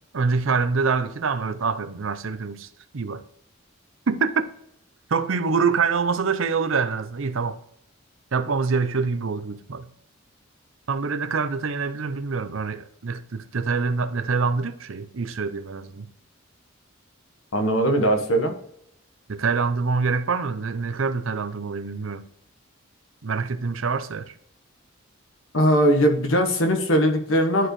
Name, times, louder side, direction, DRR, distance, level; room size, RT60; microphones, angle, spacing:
voice 1, 0.1-2.7 2.9-3.2 4.1-4.5 5.1-7.6 8.3-9.9 10.9-16.1 19.3-22.3 23.2-24.3, right 5 dB, 70° right, 0.6 m, -25 dB
voice 2, 17.5-18.5 25.5-27.7, equal, 70° left, 1.3 m, -20 dB
11.0 x 4.6 x 3.2 m
head